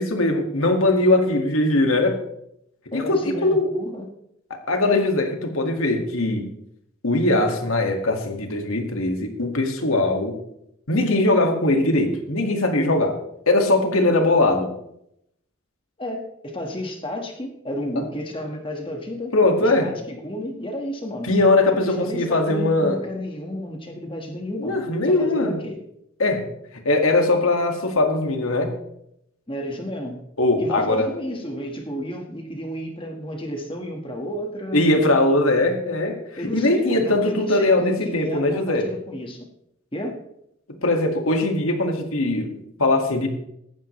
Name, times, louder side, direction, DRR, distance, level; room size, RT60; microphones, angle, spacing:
voice 1, 0.0-2.2 2.9-3.7 4.7-6.5 7.0-10.4 10.9-13.2 13.5-14.7 19.3-19.9 21.3-23.0 24.6-25.5 26.2-26.4 26.8-28.7 30.4-31.1 34.7-38.9 40.8-43.3, left 2 dB, 80° left, 3 dB, 2.1 m, -20 dB
voice 2, 2.9-4.1 16.0-19.4 19.6-21.3 21.7-24.8 25.0-25.8 29.5-30.2 30.6-34.8 36.4-39.5 39.9-40.2, left 1 dB, 25° left, 3 dB, 1.7 m, -32 dB
16.5 x 12.0 x 3.3 m, 0.78 s
head